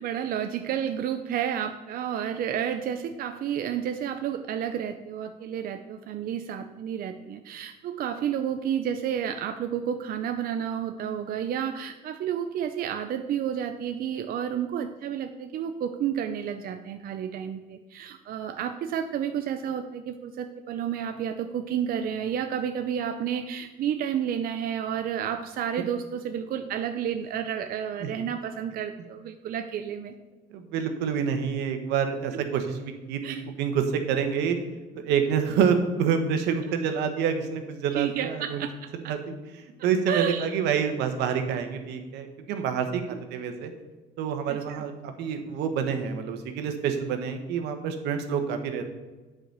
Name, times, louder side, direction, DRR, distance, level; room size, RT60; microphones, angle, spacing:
voice 1, 0.0-30.1 32.3-32.4 33.2-33.4 38.0-39.2 40.1-40.5 43.1-43.2 44.5-44.8, right 9 dB, 60° right, 7 dB, 0.6 m, -31 dB
voice 2, 30.5-34.6 35.0-38.6 39.0-39.2 39.6-43.7 44.2-48.8, right 7 dB, 90° right, 7 dB, 1.2 m, -27 dB
9.0 x 5.0 x 6.6 m, 1.2 s
cardioid pair, 110°, 17 cm